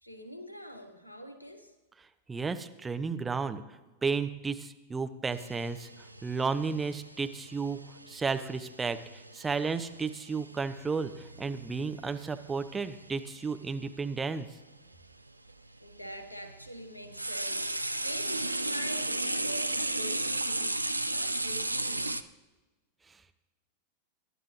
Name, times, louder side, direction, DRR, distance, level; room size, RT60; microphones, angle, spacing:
voice 1, 0.0-1.7 15.8-22.2, equal, 85° left, 9 dB, 1.3 m, -44 dB
voice 2, 2.3-3.6 4.0-7.8 8.1-14.5, right 4 dB, 15° right, 9 dB, 0.8 m, -33 dB
sound 1, 5.3-13.5 14.6-14.7 15.5-22.2, right 2 dB, 85° right, 0.5 m, -35 dB
23.5 x 11.0 x 3.1 m, 1.2 s
figure-of-eight pair, 90°, 0 cm